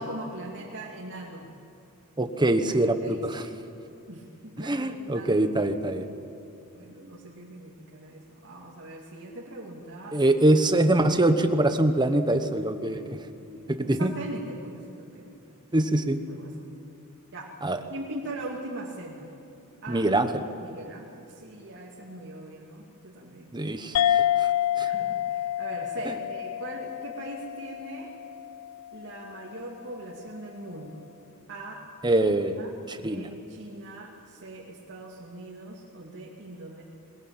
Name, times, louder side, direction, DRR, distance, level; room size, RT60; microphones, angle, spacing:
voice 1, 0.0-1.5 2.5-3.2 4.1-5.6 6.7-10.4 13.5-15.4 16.3-16.5 17.3-17.5 17.9-19.3 19.8-20.1 20.6-23.5 24.8-28.1 28.9-31.1 31.5-32.3 32.6-36.8, right 1 dB, 55° right, -3 dB, 2.6 m, -41 dB
voice 2, 2.2-3.4 4.6-6.1 10.1-13.2 13.7-14.1 15.7-16.2 17.6-17.8 19.9-20.4 23.5-24.5 24.8-24.9 26.0-26.1 32.0-32.6 32.9-33.3, right 1 dB, 20° right, 8 dB, 1.2 m, -24 dB
sound 1, 23.9-28.9, left 11 dB, 85° left, 0.5 m, -28 dB
21.5 x 21.0 x 9.0 m, 2.7 s
head